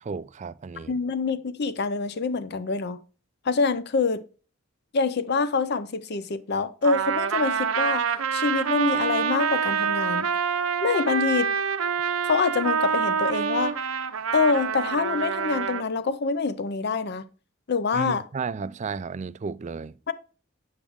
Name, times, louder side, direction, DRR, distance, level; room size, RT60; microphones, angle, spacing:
voice 1, 0.0-0.9 17.9-20.0, right 5 dB, 35° right, 0.3 m, -33 dB
voice 2, 0.9-3.0 3.4-4.2 4.9-10.3 10.8-11.5 12.2-13.8 14.3-17.2 17.7-18.2 20.1-20.2, left 4 dB, 50° left, 0.6 m, -25 dB
Trumpet, 6.8-15.8, right 6 dB, 80° right, 0.7 m, -26 dB
8.7 x 7.2 x 3.5 m
head